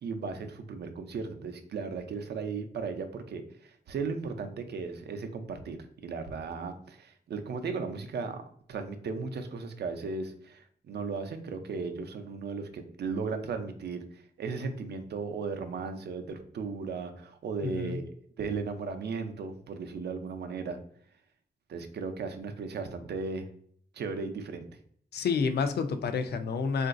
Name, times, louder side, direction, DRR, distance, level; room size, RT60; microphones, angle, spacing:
voice 1, 0.0-5.8 6.0-8.4 8.7-20.8 21.7-23.5 23.9-24.7, right 4 dB, 85° right, 7 dB, 0.5 m, -36 dB
voice 2, 17.6-18.0 25.1-26.9, left 5 dB, 75° left, 9 dB, 0.4 m, -29 dB
3.8 x 2.5 x 2.4 m, 0.63 s
wide cardioid pair, 135°, 17 cm